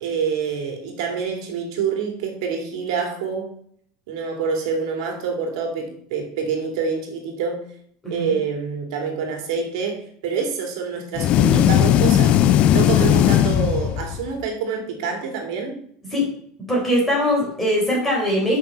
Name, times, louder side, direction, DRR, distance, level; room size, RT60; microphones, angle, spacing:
voice 1, 0.0-3.5 4.1-7.7 8.1-15.8, right 5 dB, 85° right, 2 dB, 2.3 m, -27 dB
sound 1, 11.2-14.3, left 11 dB, 40° left, 0.4 m, -17 dB
voice 2, 16.7-18.6, equal, 10° left, -4 dB, 3.9 m, -21 dB
7.6 x 5.8 x 5.5 m, 0.63 s
cardioid pair, 155°, 3 cm